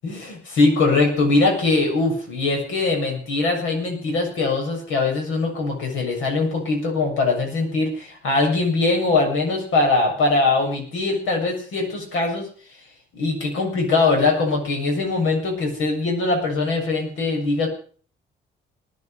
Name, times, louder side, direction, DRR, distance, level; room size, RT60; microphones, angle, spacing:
voice 1, 0.0-12.5 13.1-17.7, left 3 dB, 85° left, 1 dB, 7.2 m, -21 dB
20.0 x 9.8 x 6.8 m, 0.43 s
cardioid pair, 90°, 20 cm